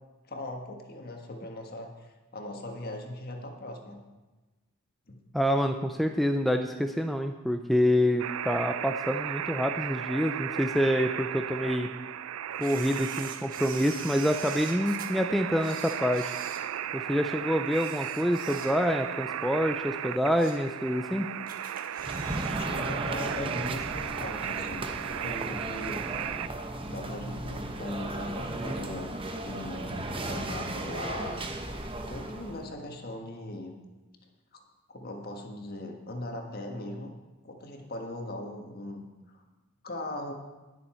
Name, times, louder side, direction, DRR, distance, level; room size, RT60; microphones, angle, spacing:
voice 1, 0.3-4.0 5.1-5.2 22.5-26.0 26.9-29.1 29.4-31.4 32.1-33.7 34.5-34.6 34.9-37.1 37.4-39.4 39.8-40.3, left 1 dB, 45° left, 3 dB, 1.6 m, -39 dB
voice 2, 5.3-11.9 12.6-16.3 16.9-21.3, equal, ahead, 5 dB, 0.4 m, -27 dB
sound 1, 8.2-26.5, right 10 dB, 75° right, 0.4 m, -36 dB
Camera, 12.6-15.1 15.6-17.2 17.7-19.1 19.4-19.6 20.1-20.7 21.0-21.1 21.5-22.6 22.9-23.0, right 5 dB, 40° right, 1.3 m, -45 dB
sound 2, 22.0-32.6, right 1 dB, 25° right, 0.9 m, -35 dB
19.5 x 6.9 x 4.4 m, 1.2 s
head